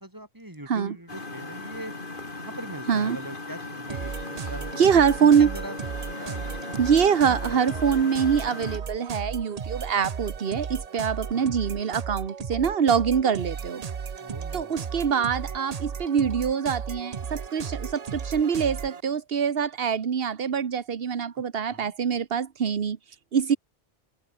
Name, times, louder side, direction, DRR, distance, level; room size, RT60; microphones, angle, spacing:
voice 1, 0.0-1.9 2.3-4.1 4.5-6.4 7.2-7.6 11.3-11.5 14.2-14.7 21.7-21.9, right 1 dB, 20° right, 3.1 m, -41 dB
Engine, 1.1-8.8, left 3 dB, 55° left, 2.9 m, -38 dB
sound 1, 3.9-19.0, right 6 dB, 40° right, 0.8 m, -35 dB
voice 2, 4.4-5.5 6.8-13.8 14.5-23.6, right 7 dB, 65° right, 1.3 m, -24 dB
omnidirectional pair, 1.1 m